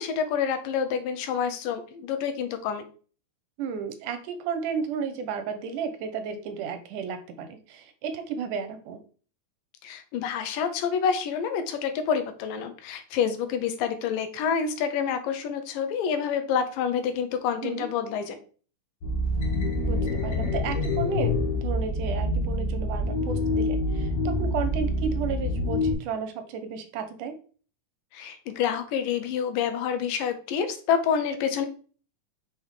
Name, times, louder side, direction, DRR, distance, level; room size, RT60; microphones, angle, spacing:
voice 1, 0.0-2.8 9.8-18.4 28.1-31.7, left 7 dB, 85° left, 8 dB, 2.5 m, -28 dB
voice 2, 3.6-9.0 17.6-17.9 19.8-27.4, right 6 dB, 75° right, 8 dB, 2.2 m, -33 dB
sound 1, 19.0-25.9, left 2 dB, 55° left, 2.3 m, -26 dB
6.0 x 3.5 x 4.7 m, 0.40 s
omnidirectional pair, 3.8 m